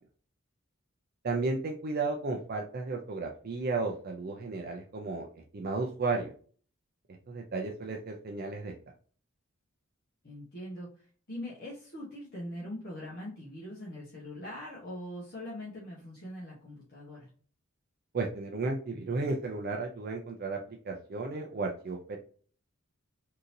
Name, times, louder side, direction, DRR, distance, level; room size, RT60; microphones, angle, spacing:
voice 1, 1.2-5.3 5.5-6.3 7.3-8.7 18.1-22.2, right 3 dB, 45° right, 2 dB, 0.5 m, -33 dB
voice 2, 10.2-17.3, left 1 dB, 50° left, -6 dB, 1.1 m, -42 dB
3.8 x 2.8 x 2.6 m, 0.43 s
head